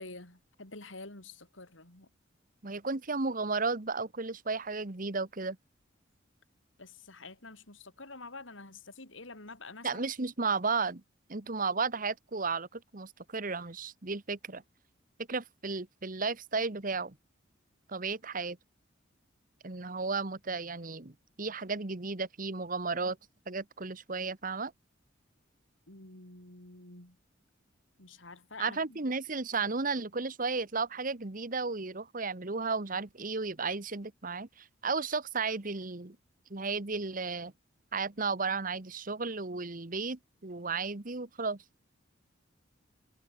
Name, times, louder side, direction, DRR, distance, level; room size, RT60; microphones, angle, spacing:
voice 1, 0.0-2.1 6.8-10.0 25.9-27.2 28.0-29.0, left 3 dB, 85° left, 5.3 m, -48 dB
voice 2, 2.6-5.6 9.8-11.0 11.3-14.6 15.3-17.1 17.9-18.6 19.6-23.2 23.5-24.7 28.6-36.2 36.5-37.5 37.9-41.6, right 4 dB, 45° right, 1.3 m, -34 dB
head